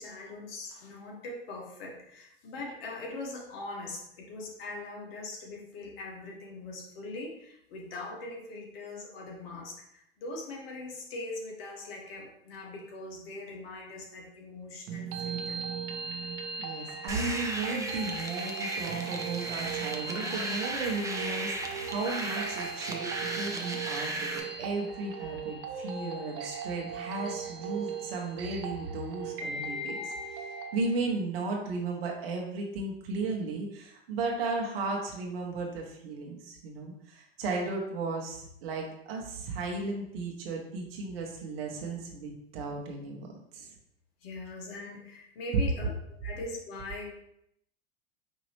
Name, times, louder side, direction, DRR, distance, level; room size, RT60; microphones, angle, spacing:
voice 1, 0.0-15.6 44.2-47.1, left 2 dB, 70° left, -1 dB, 1.4 m, -41 dB
sound 1, 14.9-30.8, right 5 dB, 45° right, 0.8 m, -38 dB
voice 2, 16.6-30.4 30.7-43.7, right 3 dB, 70° right, 0 dB, 1.1 m, -35 dB
sound 2, 17.1-24.4, right 2 dB, 10° right, 0.7 m, -36 dB
Crowd, 19.8-25.1, left 8 dB, 45° left, 0.5 m, -50 dB
5.4 x 2.9 x 3.1 m, 0.75 s
hypercardioid pair, 85°, 31 cm